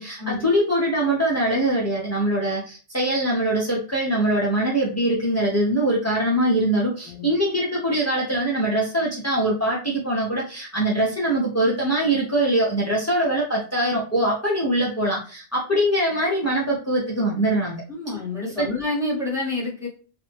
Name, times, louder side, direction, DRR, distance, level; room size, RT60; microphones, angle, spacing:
voice 1, 0.0-17.8 18.6-18.7, right 1 dB, 25° left, -6 dB, 0.4 m, -23 dB
voice 2, 17.9-19.9, left 2 dB, 5° right, -4 dB, 0.9 m, -28 dB
3.2 x 2.1 x 3.3 m, 0.38 s
omnidirectional pair, 1.2 m